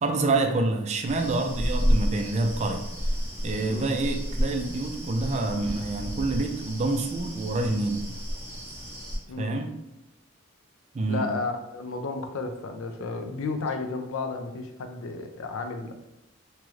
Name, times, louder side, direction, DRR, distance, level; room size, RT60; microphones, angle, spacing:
voice 1, 0.0-2.8 3.4-8.0 9.4-9.7 10.9-11.3, right 2 dB, 35° right, 4 dB, 0.3 m, -27 dB
sound 1, 1.0-9.2, equal, 10° right, 0.7 m, -31 dB
voice 2, 9.3-9.6 11.1-15.9, left 3 dB, 80° left, 6 dB, 0.4 m, -33 dB
3.0 x 2.4 x 3.1 m, 0.91 s
head